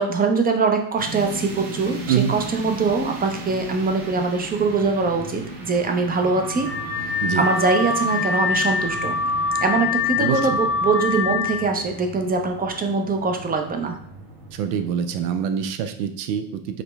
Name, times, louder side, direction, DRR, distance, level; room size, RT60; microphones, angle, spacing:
voice 1, 0.0-6.7 7.0-9.2 9.6-14.0, right 4 dB, 20° right, 5 dB, 0.5 m, -23 dB
drone airy huming, 1.0-15.7, right 1 dB, 45° right, 1.2 m, -37 dB
Car / Alarm, 6.2-11.7, left 4 dB, 30° left, 0.6 m, -25 dB
voice 2, 10.2-10.6 14.5-16.8, right 8 dB, 85° right, 8 dB, 0.6 m, -25 dB
5.0 x 2.1 x 3.3 m, 0.66 s
supercardioid pair, 105°, 46 cm